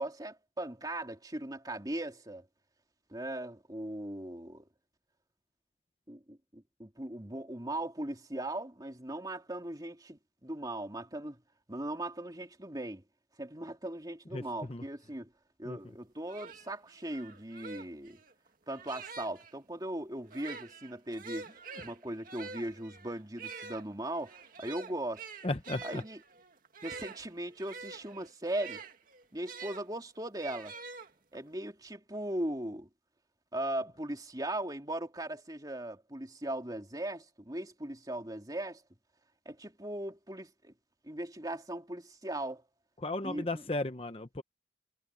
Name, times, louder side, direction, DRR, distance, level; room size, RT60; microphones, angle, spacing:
voice 1, 0.0-2.5 3.1-4.6 6.1-11.4 11.7-13.0 13.4-15.3 15.6-18.2 18.7-21.5 21.8-25.2 25.8-26.2 26.8-28.8 29.3-30.7 31.3-32.9 33.5-38.8 39.4-40.7 41.0-42.6 43.2-43.5, right 1 dB, 20° right, 3.0 m, -38 dB
voice 2, 14.3-14.8 15.6-15.8 25.4-26.0 43.0-44.4, left 2 dB, 30° left, 0.9 m, -35 dB
sound 1, 15.9-16.0 16.3-19.5 20.2-29.8 30.4-31.5, right 4 dB, 50° right, 2.2 m, -47 dB
head